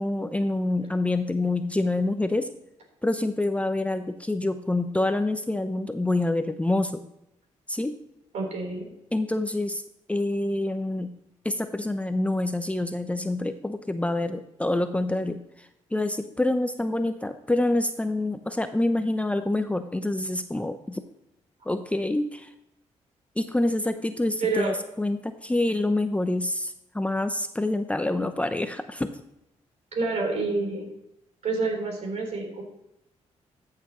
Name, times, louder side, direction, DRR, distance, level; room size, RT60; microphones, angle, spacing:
voice 1, 0.0-2.5 3.0-7.0 7.7-8.0 9.1-9.8 10.1-11.1 11.4-15.4 15.9-21.0 21.7-22.5 23.4-29.1, left 2 dB, 10° left, 9 dB, 0.6 m, -26 dB
voice 2, 8.3-8.8 24.4-24.7 29.9-30.9 31.4-32.6, right 3 dB, 65° right, 1 dB, 3.8 m, -28 dB
13.0 x 6.7 x 3.0 m, 0.82 s
cardioid pair, 70°, 12 cm